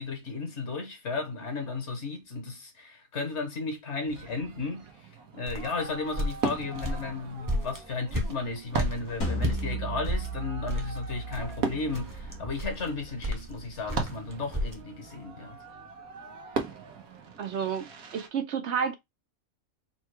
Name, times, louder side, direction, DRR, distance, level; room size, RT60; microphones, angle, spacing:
voice 1, 0.0-15.6, left 3 dB, 55° left, 1.4 m, -34 dB
Fireworks, 4.1-18.3, right 5 dB, 90° right, 1.4 m, -39 dB
sound 1, 5.4-9.6 10.0-14.8, equal, 15° right, 0.8 m, -33 dB
sound 2, 9.2-14.3, right 1 dB, 75° left, 1.8 m, -37 dB
voice 2, 17.4-17.9 18.1-19.0, right 7 dB, 60° right, 0.8 m, -30 dB
4.4 x 2.3 x 4.6 m
omnidirectional pair, 1.5 m